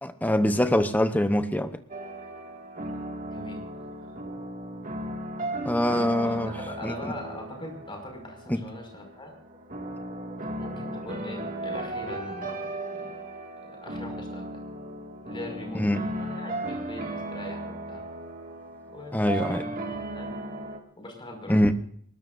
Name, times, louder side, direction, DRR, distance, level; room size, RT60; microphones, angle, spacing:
voice 1, 0.0-1.8 5.6-6.5 6.8-7.1 8.5-8.6 15.8-16.0 19.1-19.6 21.5-21.7, left 1 dB, 10° left, 0.8 m, -24 dB
sound 1, 1.9-20.8, right 1 dB, 40° right, 2.0 m, -36 dB
voice 2, 3.3-3.6 6.2-6.4 6.7-9.3 10.6-13.2 13.6-14.4 15.3-18.0 18.9-19.7 20.1-20.3 21.0-21.7, left 1 dB, 25° left, 5.4 m, -41 dB
22.5 x 20.0 x 2.6 m
head